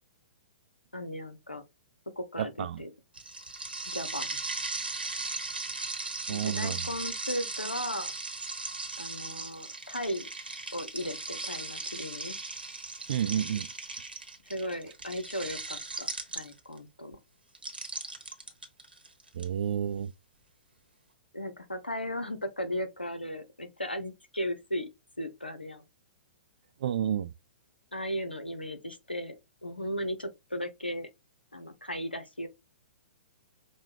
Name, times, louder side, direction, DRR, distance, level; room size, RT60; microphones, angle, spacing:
voice 1, 0.9-1.6 2.2-2.9 3.9-4.4 6.3-8.1 9.0-10.3 10.7-12.4 14.5-16.1 16.3-17.2 21.3-24.9 25.2-25.8 27.9-29.4 29.6-31.1 31.5-32.5, equal, 85° left, 0.8 m, -36 dB
voice 2, 2.4-2.8 6.3-6.8 13.1-13.7 19.4-20.1 26.8-27.3, right 9 dB, 50° right, 0.3 m, -30 dB
sound 1, 3.1-16.8 17.5-19.4, right 3 dB, 80° right, 1.1 m, -37 dB
5.3 x 2.2 x 3.2 m
figure-of-eight pair, 115°, 5 cm